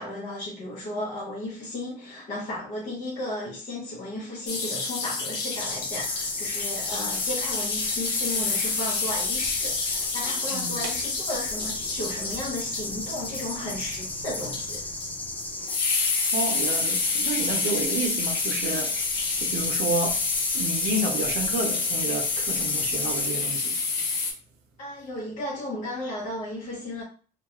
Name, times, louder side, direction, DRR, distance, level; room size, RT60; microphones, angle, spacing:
voice 1, 0.0-14.9 24.8-27.0, left 1 dB, 45° left, 0.7 m, -34 dB
sound 1, 4.5-24.3, left 4 dB, 80° left, 0.7 m, -28 dB
sound 2, 5.6-23.3, left 2 dB, 10° left, 0.4 m, -36 dB
voice 2, 10.5-11.0 16.3-19.1 19.4-20.2 20.5-23.8, right 3 dB, 80° right, 0.6 m, -30 dB
2.3 x 2.2 x 2.8 m
cardioid pair, 110°, 17 cm